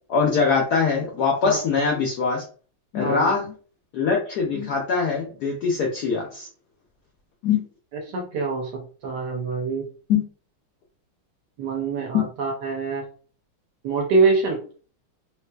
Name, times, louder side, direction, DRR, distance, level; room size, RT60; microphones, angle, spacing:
voice 1, 0.1-2.4 2.9-3.5 3.9-6.5 7.4-7.6 10.1-10.2 12.1-12.3, left 5 dB, 75° left, 0 dB, 0.9 m, -22 dB
voice 2, 3.0-3.4 8.1-9.8 11.6-13.0 13.8-14.6, right 4 dB, 70° right, 1 dB, 1.1 m, -24 dB
3.1 x 3.1 x 2.2 m, 0.40 s
omnidirectional pair, 2.3 m